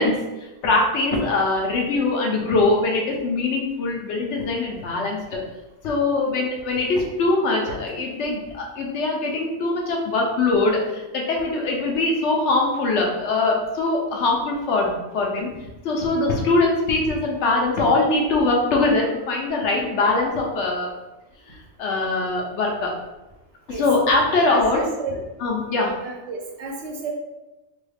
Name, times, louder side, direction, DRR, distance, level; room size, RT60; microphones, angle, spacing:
voice 1, 0.0-5.4 5.8-15.5 15.8-20.9 21.5-22.9 23.7-24.9 25.4-26.0, left 2 dB, 75° left, -1 dB, 1.0 m, -22 dB
voice 2, 24.5-25.2 26.0-27.1, right 4 dB, 75° right, 0 dB, 1.0 m, -32 dB
3.5 x 2.3 x 3.3 m, 1.0 s
omnidirectional pair, 1.2 m